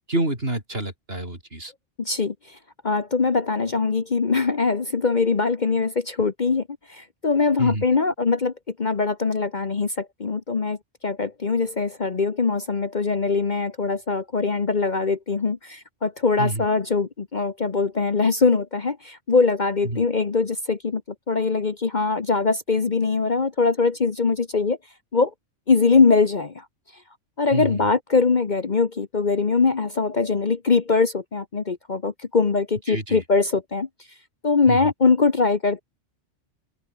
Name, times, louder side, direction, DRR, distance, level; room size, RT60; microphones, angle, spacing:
voice 1, 0.1-1.7 7.6-7.8 16.4-16.6 19.8-20.0 27.5-27.9 32.9-33.2 34.7-34.9, right 1 dB, 50° right, 6.3 m, -28 dB
voice 2, 2.0-2.6 2.8-8.5 8.8-10.8 11.0-21.0 21.3-24.8 25.1-25.3 25.7-26.6 27.4-33.9 34.4-35.8, left 4 dB, 40° left, 1.2 m, -22 dB
open air
omnidirectional pair, 1.3 m